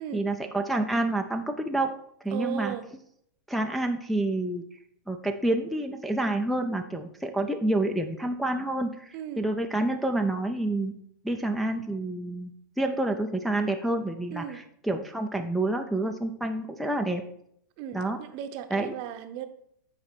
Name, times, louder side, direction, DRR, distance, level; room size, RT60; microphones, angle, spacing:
voice 1, 0.0-1.9 2.2-2.7 3.5-4.6 5.1-10.9 11.2-12.5 12.8-17.2 17.9-18.2 18.7-18.9, right 2 dB, ahead, 2 dB, 0.4 m, -28 dB
voice 2, 2.3-2.9 9.1-9.4 14.3-14.6 17.8-19.5, right 11 dB, 45° right, 8 dB, 0.7 m, -36 dB
8.6 x 4.2 x 4.4 m, 0.71 s
hypercardioid pair, 125°, 11 cm